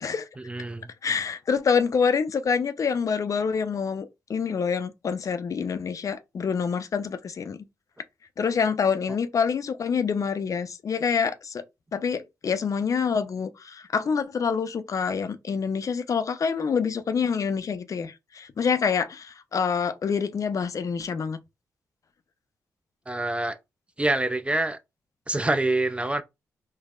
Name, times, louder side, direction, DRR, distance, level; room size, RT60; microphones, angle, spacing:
voice 1, 0.4-0.9 23.1-23.6 24.0-24.8 25.3-26.2, right 2 dB, 15° right, 0.4 m, -26 dB
voice 2, 1.0-7.6 8.4-11.6 11.9-21.4, left 6 dB, 50° left, 0.4 m, -26 dB
3.4 x 2.0 x 2.3 m
hypercardioid pair, 40°, 7 cm